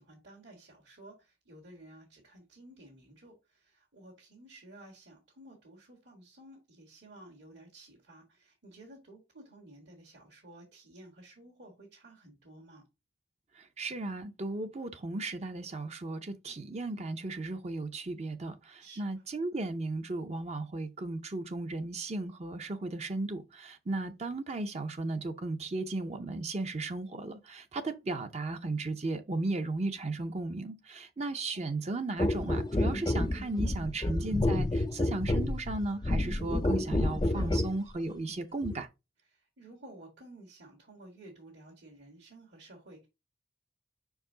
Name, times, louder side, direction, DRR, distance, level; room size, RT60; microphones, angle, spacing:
voice 1, 0.0-12.8 18.8-19.2 31.5-31.6 37.2-37.7 39.3-43.1, right 1 dB, 70° right, 2.2 m, -53 dB
voice 2, 13.6-38.9, right 2 dB, 35° right, 0.6 m, -35 dB
sound 1, 32.2-37.8 38.6-38.8, left 1 dB, 25° left, 0.5 m, -29 dB
5.5 x 4.8 x 3.8 m
head